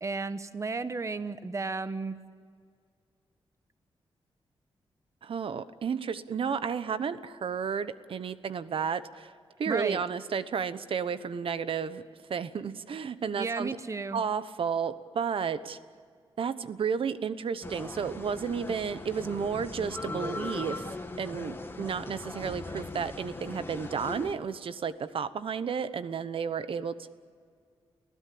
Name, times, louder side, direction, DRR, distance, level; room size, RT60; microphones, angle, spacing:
voice 1, 0.0-2.2 9.7-10.0 13.4-14.2, right 4 dB, 30° right, 12 dB, 1.1 m, -33 dB
voice 2, 5.2-9.3 9.6-12.0 12.3-13.8 14.1-15.8 16.4-20.9 21.2-27.1, right 6 dB, 70° right, 13 dB, 1.0 m, -32 dB
sound 1, 17.6-24.3, left 2 dB, 25° left, 1.7 m, -39 dB
29.5 x 16.5 x 8.6 m, 2.1 s
cardioid pair, 85°, 10 cm